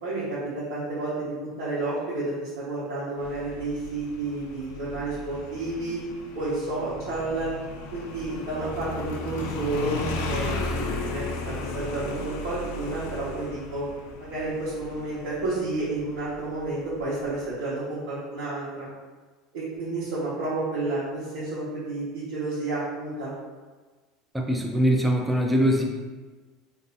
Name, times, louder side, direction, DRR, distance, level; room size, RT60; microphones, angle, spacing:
voice 1, 0.0-6.0 6.3-7.5 7.9-13.8 14.2-18.9 19.5-23.3, right 2 dB, 70° right, -11 dB, 1.0 m, -31 dB
Motorcycle, 3.2-17.5, left 2 dB, 75° left, 0.4 m, -35 dB
voice 2, 24.3-25.8, equal, 5° right, 0 dB, 0.4 m, -22 dB
2.6 x 2.3 x 3.9 m, 1.3 s
cardioid pair, 155°, 0 cm